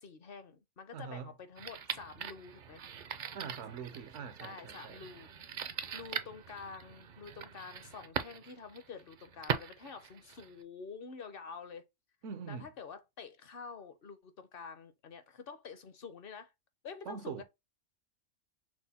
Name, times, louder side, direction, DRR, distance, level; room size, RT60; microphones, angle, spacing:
voice 1, 0.0-2.8 3.9-4.0 4.4-11.8 12.5-16.5 16.8-17.4, left 5 dB, 55° left, 0.8 m, -48 dB
voice 2, 0.9-1.3 3.3-5.1 12.2-12.7 17.0-17.4, right 6 dB, 75° right, 1.0 m, -43 dB
sound 1, 1.6-10.6, right 7 dB, 55° right, 0.6 m, -42 dB
6.1 x 2.1 x 4.1 m
omnidirectional pair, 1.2 m